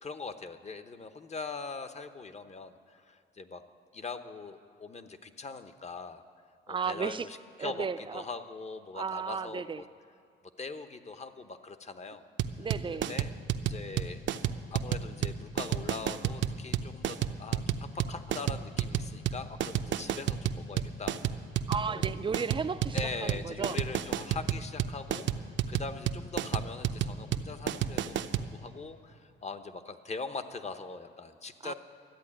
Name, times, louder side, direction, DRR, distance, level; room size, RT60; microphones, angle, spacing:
voice 1, 0.0-3.6 3.9-6.2 6.7-9.9 10.6-12.3 12.9-13.3 13.6-14.2 14.7-21.2 21.9-22.1 22.9-31.7, left 4 dB, 35° left, 9 dB, 0.9 m, -41 dB
voice 2, 6.7-7.3 7.6-8.2 8.9-9.8 12.6-13.1 21.7-23.8 31.6-31.7, right 5 dB, 25° right, 13 dB, 0.5 m, -34 dB
sound 1, 12.4-28.5, right 10 dB, 70° right, 0.7 m, -30 dB
13.0 x 8.4 x 9.9 m, 2.5 s
cardioid pair, 90°, 20 cm